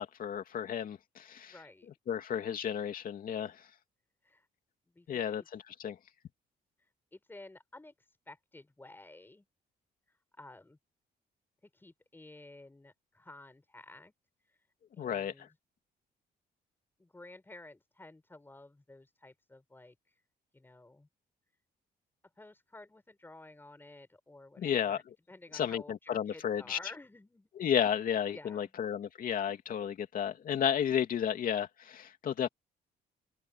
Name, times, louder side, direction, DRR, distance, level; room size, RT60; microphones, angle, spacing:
voice 1, 0.0-1.5 2.1-3.6 5.1-6.0 15.0-15.3 24.6-25.0 25.5-26.8 27.6-32.5, left 9 dB, 55° left, 2.7 m, -32 dB
voice 2, 1.5-1.9 4.2-4.5 4.9-5.5 6.8-9.4 10.1-10.8 11.6-14.1 14.4-14.7 15.0-15.5 17.0-20.2 20.5-21.1 22.4-25.0 25.3-27.7 28.3-28.7, left 2 dB, 10° left, 6.5 m, -53 dB
cardioid pair, 120°, 17 cm